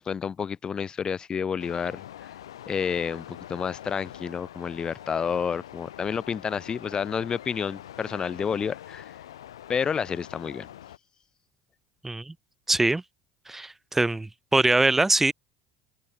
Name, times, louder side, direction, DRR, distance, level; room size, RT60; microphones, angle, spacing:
voice 1, 0.0-2.0 2.7-9.1 9.7-10.7, left 7 dB, 30° left, 1.4 m, -30 dB
sound 1, 1.6-11.0, left 11 dB, 75° left, 6.2 m, -44 dB
voice 2, 12.7-13.0 13.5-15.3, right 2 dB, 10° right, 1.1 m, -23 dB
figure-of-eight pair, 70°, 3 cm